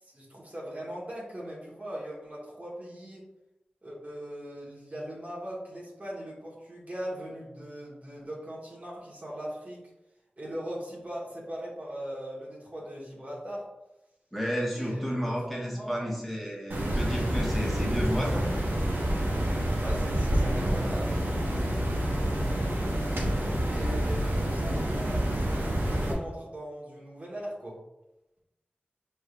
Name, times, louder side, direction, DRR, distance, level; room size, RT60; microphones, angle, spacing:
voice 1, 0.0-3.3 3.8-9.8 10.4-13.7 14.7-16.1 19.8-21.5 23.6-27.8, equal, 45° right, -5 dB, 1.4 m, -40 dB
voice 2, 14.3-18.5 24.1-24.2, equal, 5° left, -4 dB, 1.3 m, -31 dB
sound 1, 16.7-26.1, right 1 dB, 85° right, 0.9 m, -28 dB
5.2 x 3.3 x 2.5 m, 0.95 s
cardioid pair, 40°, 4 cm